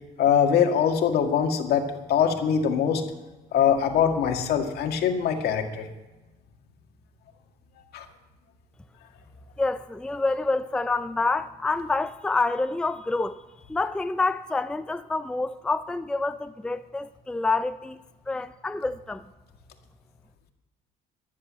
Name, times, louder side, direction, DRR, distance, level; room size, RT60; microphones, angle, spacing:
voice 1, 0.2-3.0 3.5-5.9 7.9-8.1, left 8 dB, 70° left, 1.9 m, -23 dB
voice 2, 9.6-13.4 13.7-18.0 18.3-19.2, left 3 dB, 5° left, 0.4 m, -27 dB
14.0 x 10.0 x 7.5 m
cardioid pair, 110°, 17 cm